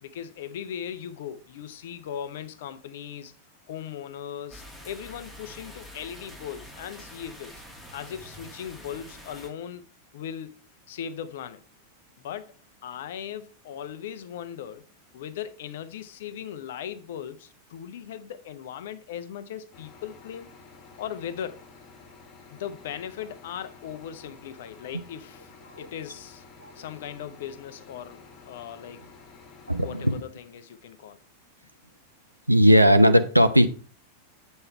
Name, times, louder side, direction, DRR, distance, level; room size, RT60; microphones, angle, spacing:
voice 1, 0.0-3.3 3.7-7.5 7.9-9.8 10.1-10.6 10.9-11.6 12.2-12.5 12.8-14.8 15.1-20.5 21.0-21.6 22.5-25.5 25.8-26.4 26.7-29.0 29.8-31.2, left 9 dB, 55° left, 0.8 m, -38 dB
sound 1, 4.5-9.5, equal, ahead, 2.6 m, -46 dB
sound 2, 19.7-30.2, left 4 dB, 35° left, 1.8 m, -51 dB
voice 2, 29.7-30.2 32.5-33.7, equal, 85° right, 0.5 m, -18 dB
7.8 x 5.4 x 4.5 m
figure-of-eight pair, 90°, 0 cm